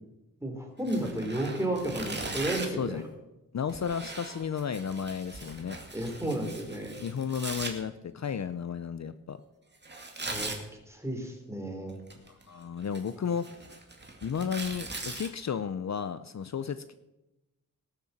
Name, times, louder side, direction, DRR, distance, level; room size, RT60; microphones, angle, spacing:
voice 1, 0.4-3.0 5.9-7.0 10.3-10.5 10.9-12.0, right 1 dB, 10° right, 2 dB, 3.3 m, -32 dB
Tearing, 0.8-2.9 3.7-7.7 9.8-10.6 11.9-12.4 12.8-15.3, right 2 dB, 30° right, 2.3 m, -39 dB
voice 2, 2.7-3.1 3.5-5.8 7.0-9.4 12.2-13.5 14.2-16.9, left 7 dB, 55° left, 12 dB, 0.6 m, -33 dB
18.5 x 6.8 x 7.4 m, 0.96 s
wide cardioid pair, 110°, 33 cm